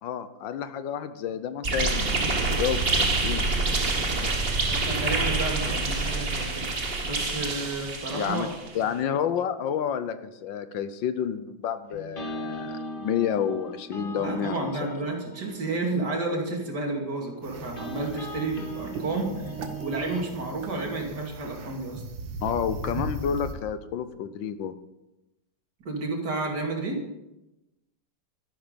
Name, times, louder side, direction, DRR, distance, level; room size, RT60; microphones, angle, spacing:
voice 1, 0.0-3.5 8.1-8.5 8.7-14.9 22.4-24.8, left 8 dB, 80° left, 11 dB, 1.6 m, -30 dB
sound 1, 1.6-8.7, right 3 dB, 35° right, 1.5 m, -26 dB
voice 2, 4.7-6.7 7.0-8.5 14.2-19.5 19.8-22.0 25.8-27.0, right 2 dB, 60° right, 1 dB, 3.0 m, -31 dB
sound 2, 11.9-20.3, right 1 dB, 30° left, 2.0 m, -39 dB
sound 3, 17.4-23.5, right 3 dB, 90° right, 2.0 m, -38 dB
12.5 x 11.5 x 5.2 m, 0.95 s
omnidirectional pair, 2.0 m